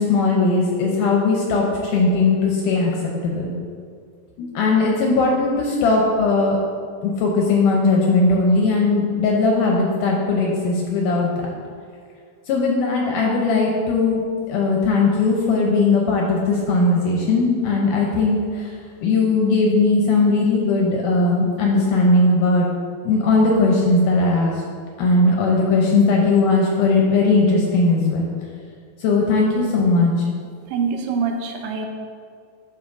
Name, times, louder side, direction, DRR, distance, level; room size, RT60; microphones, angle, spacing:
voice 1, 0.0-2.9 3.2-3.5 4.4-6.6 7.0-11.5 12.5-14.2 14.5-18.7 19.0-22.7 23.0-24.6 25.0-28.3 29.0-30.1, left 3 dB, 80° left, -1 dB, 1.9 m, -18 dB
voice 2, 30.7-31.9, right 5 dB, 85° right, 3 dB, 2.7 m, -24 dB
12.5 x 4.7 x 2.6 m, 2.2 s
omnidirectional pair, 4.4 m